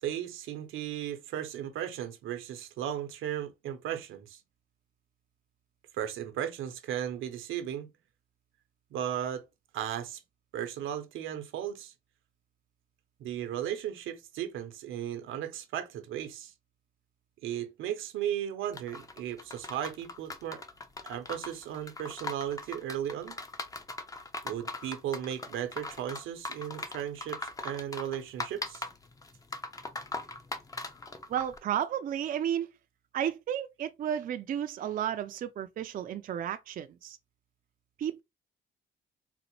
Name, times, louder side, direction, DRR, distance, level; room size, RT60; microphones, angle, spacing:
voice 1, 0.0-4.4 5.9-7.9 8.9-9.4 9.7-10.2 10.5-11.9 13.2-16.5 17.4-20.6 21.0-23.4 24.4-28.9, right 10 dB, 85° right, 0.7 m, -36 dB
sound 1, 18.7-31.6, left 2 dB, 15° left, 0.5 m, -40 dB
voice 2, 31.3-32.7 33.1-37.2 38.0-38.2, right 10 dB, 45° right, 0.4 m, -32 dB
4.0 x 2.0 x 2.9 m
cardioid pair, 90°, 20 cm